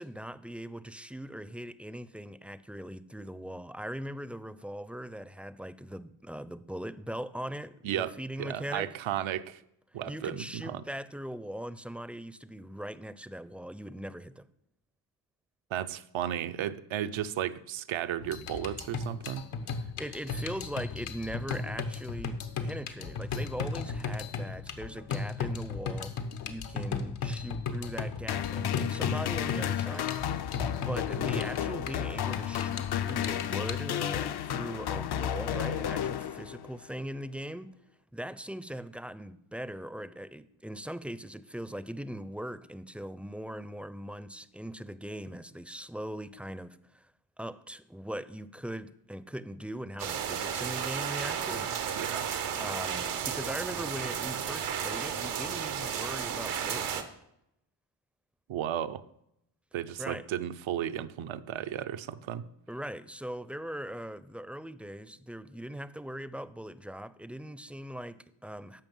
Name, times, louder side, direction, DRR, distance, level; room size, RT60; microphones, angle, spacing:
voice 1, 0.0-8.9 10.1-14.5 20.0-30.1 30.5-37.7 38.1-47.1 47.4-51.7 52.6-57.1 60.0-60.3 62.7-68.8, equal, 5° right, 0.5 m, -40 dB
voice 2, 7.8-8.1 8.4-9.6 9.9-10.8 15.7-19.5 52.0-52.3 58.5-59.0 59.7-62.5, right 11 dB, 70° right, 0.7 m, -34 dB
sound 1, 18.2-33.8, left 5 dB, 80° left, 1.2 m, -36 dB
sound 2, 28.3-36.8, left 10 dB, 50° left, 0.6 m, -32 dB
sound 3, 50.0-57.0, right 8 dB, 85° right, 1.2 m, -33 dB
13.5 x 5.3 x 5.5 m
cardioid pair, 60°, 49 cm